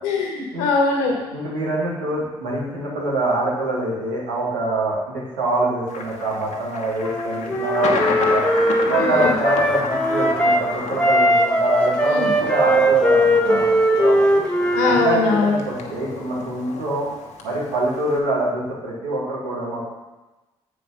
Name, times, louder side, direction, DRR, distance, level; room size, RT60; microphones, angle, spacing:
voice 1, 0.0-1.2 8.8-9.4 12.0-12.3 13.5-13.6 14.7-15.6, left 4 dB, 85° left, 0 dB, 1.5 m, -22 dB
voice 2, 1.3-8.5 8.8-13.6 13.9-14.4 14.8-17.1 17.4-19.8, right 2 dB, 90° right, -7 dB, 2.4 m, -24 dB
Thunder, 5.9-18.2, left 4 dB, 65° left, 1.1 m, -31 dB
Wind instrument woodwind instrument, 7.0-10.6 11.0-15.1, equal, 10° left, 1.6 m, -19 dB
7.4 x 5.2 x 5.8 m, 1.1 s
hypercardioid pair, 45°, 13 cm